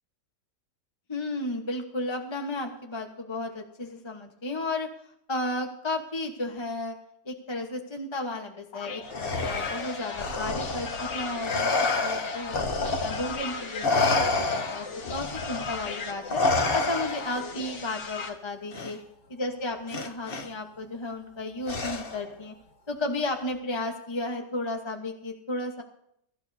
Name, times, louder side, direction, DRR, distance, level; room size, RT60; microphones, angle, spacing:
voice 1, 1.1-4.9 5.3-6.9 7.2-12.6 13.0-19.0 19.3-22.5 22.9-25.8, left 2 dB, 20° left, 3 dB, 0.9 m, -33 dB
sound 1, 8.7-18.3, left 5 dB, 85° left, 2.2 m, -37 dB
Respiratory sounds, 9.1-13.5 13.8-17.5 18.7-18.9 19.9-20.5 21.7-22.3, left 3 dB, 40° left, 1.1 m, -28 dB
23.0 x 13.0 x 2.7 m, 0.74 s
omnidirectional pair, 1.9 m